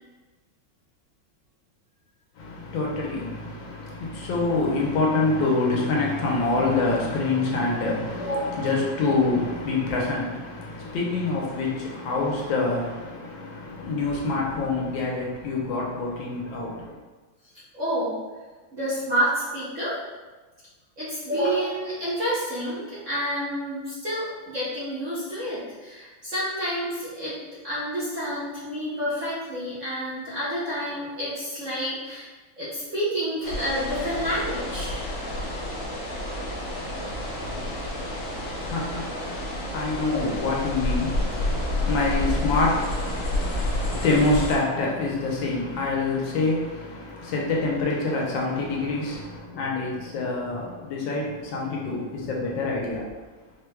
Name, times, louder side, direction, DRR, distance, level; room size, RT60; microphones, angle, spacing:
voice 1, 2.4-17.0 36.8-53.1, left 3 dB, 75° left, -3 dB, 1.5 m, -26 dB
voice 2, 8.2-8.5 17.7-18.2 18.7-20.0 21.0-27.4 27.6-32.3 32.6-35.2, equal, 55° right, -9 dB, 0.9 m, -29 dB
sound 1, 33.4-44.6, left 1 dB, 50° left, 0.9 m, -29 dB
4.8 x 3.2 x 2.3 m, 1.3 s
omnidirectional pair, 2.2 m